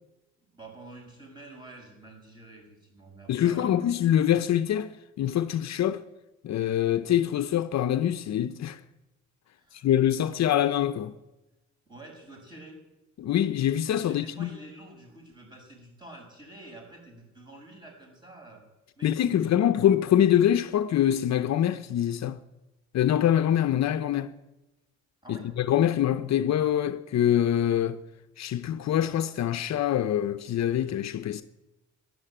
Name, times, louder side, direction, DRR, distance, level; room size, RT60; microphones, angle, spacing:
voice 1, 0.4-3.8 9.6-9.9 11.9-12.8 14.0-18.6 18.9-19.7 25.2-25.5, right 2 dB, 15° right, 6.9 m, -48 dB
voice 2, 3.3-4.9 5.2-6.0 6.4-8.8 9.7-11.1 13.2-14.5 19.0-22.4 22.9-24.3 25.3-28.0 28.4-31.4, left 10 dB, 65° left, 0.7 m, -24 dB
13.0 x 11.0 x 8.9 m
cardioid pair, 90°, 30 cm